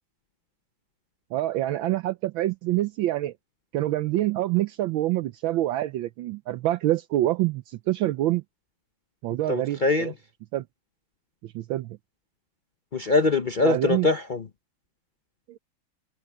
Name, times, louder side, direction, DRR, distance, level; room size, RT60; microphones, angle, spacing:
voice 1, 1.3-3.3 3.7-8.4 9.2-10.1 10.5-10.6 11.4-12.0 13.6-14.1 15.5-15.6, right 15 dB, 75° right, 1.4 m, -26 dB
voice 2, 9.5-10.1 12.9-14.4, left 3 dB, 75° left, 0.4 m, -23 dB
omnidirectional pair, 2.3 m